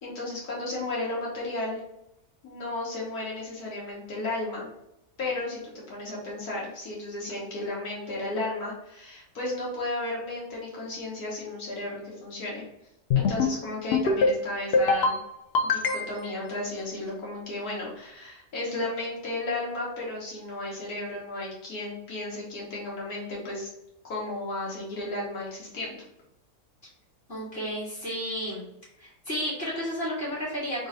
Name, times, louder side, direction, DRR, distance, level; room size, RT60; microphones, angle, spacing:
voice 1, 0.0-1.8 2.4-4.7 5.2-5.6 5.9-12.6 13.2-15.2 15.6-23.7 24.0-26.1, left 2 dB, 85° left, -5 dB, 1.9 m, -34 dB
sound 1, 13.1-13.6 13.9-14.4 14.7-15.2 15.5-16.3, left 4 dB, 65° left, 0.6 m, -23 dB
voice 2, 27.3-28.7 29.0-30.9, equal, 40° left, -8 dB, 1.8 m, -32 dB
3.9 x 2.6 x 3.9 m, 0.82 s
omnidirectional pair, 1.6 m